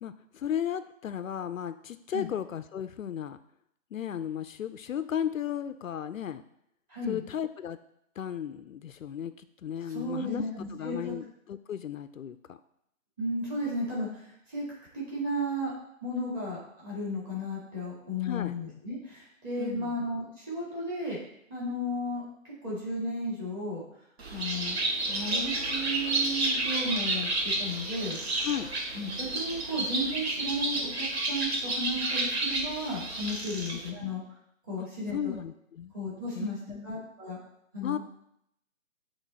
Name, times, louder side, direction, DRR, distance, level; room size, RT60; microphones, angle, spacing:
voice 1, 0.0-3.4 3.9-6.4 7.1-7.8 8.2-10.4 10.7-12.6 18.2-18.5 19.6-19.9 28.4-28.7 33.7-33.8 35.1-35.9 36.3-36.9 37.8-38.0, left 9 dB, 75° left, 12 dB, 0.5 m, -35 dB
voice 2, 6.9-7.2 9.9-11.1 13.2-14.6 14.9-15.7 16.0-21.2 21.5-23.8 24.3-24.8 25.1-28.2 28.9-34.2 34.7-35.3 35.9-36.6 36.8-37.4 37.7-38.0, equal, 15° right, -7 dB, 2.1 m, -34 dB
Bird, 24.2-33.9, right 2 dB, 50° right, 1.1 m, -31 dB
8.3 x 3.2 x 4.1 m, 0.75 s
hypercardioid pair, 160°, 40 cm